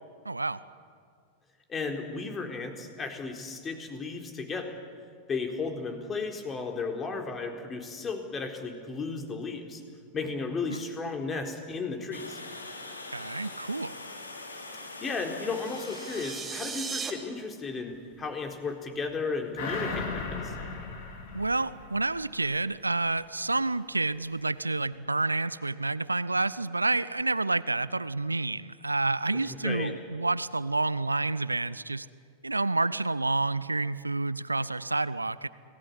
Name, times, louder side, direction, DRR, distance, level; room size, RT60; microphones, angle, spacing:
voice 1, 0.2-0.6 10.7-10.8 13.1-14.0 21.3-32.1 32.4-35.5, right 2 dB, 80° right, 17 dB, 0.7 m, -29 dB
voice 2, 1.7-4.8 5.3-9.8 10.1-12.4 14.8-20.5 29.5-29.9, left 4 dB, 20° left, 3 dB, 4.1 m, -34 dB
Water, 12.1-17.2, left 2 dB, 75° left, 3.6 m, -43 dB
sound 1, 15.5-17.1, right 5 dB, 15° right, 3.3 m, -37 dB
sound 2, 19.6-22.5 22.8-22.9, left 4 dB, 50° left, 4.6 m, -36 dB
30.0 x 19.5 x 10.0 m, 2.2 s
figure-of-eight pair, 90°, 0 cm